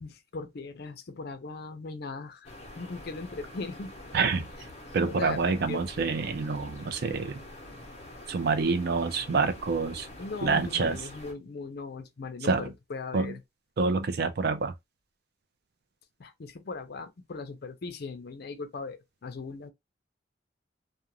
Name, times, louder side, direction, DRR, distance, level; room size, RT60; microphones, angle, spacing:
voice 1, 0.0-4.0 5.1-5.8 10.2-13.4 16.2-19.7, left 3 dB, 60° left, 0.5 m, -39 dB
sound 1, 2.4-11.3, left 1 dB, 35° left, 0.8 m, -46 dB
voice 2, 4.1-4.5 4.9-7.4 8.3-10.1 10.4-11.0 12.5-12.7 13.1-13.3 13.8-14.7, right 4 dB, 60° right, 0.4 m, -27 dB
2.4 x 2.1 x 2.9 m
head